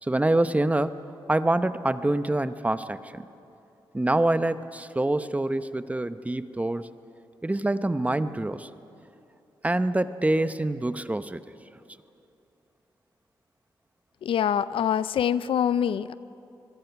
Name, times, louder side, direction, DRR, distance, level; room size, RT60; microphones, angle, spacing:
voice 1, 0.0-1.0 1.3-3.3 3.9-6.9 7.4-8.7 9.6-11.4, right 1 dB, 15° right, 12 dB, 0.8 m, -25 dB
voice 2, 14.2-16.1, left 9 dB, 80° left, 16 dB, 0.5 m, -25 dB
26.5 x 21.5 x 5.9 m, 2.8 s
cardioid pair, 75°, 9 cm